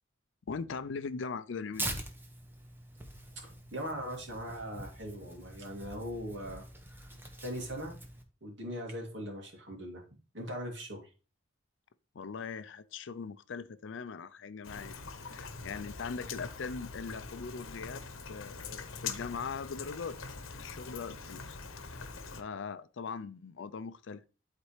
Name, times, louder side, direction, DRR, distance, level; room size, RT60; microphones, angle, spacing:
voice 1, 0.5-1.9 12.1-20.2 20.6-21.6 21.8-22.1 22.4-24.2, left 5 dB, 65° left, 0.4 m, -40 dB
Tearing, 1.7-8.2, right 1 dB, 10° right, 0.8 m, -44 dB
voice 2, 3.3-6.6 7.1-8.0 8.4-10.0 10.3-11.1, equal, 60° right, 2.3 m, -40 dB
Rain, 14.6-22.4, left 5 dB, 90° left, 0.9 m, -43 dB
11.5 x 4.2 x 3.2 m
head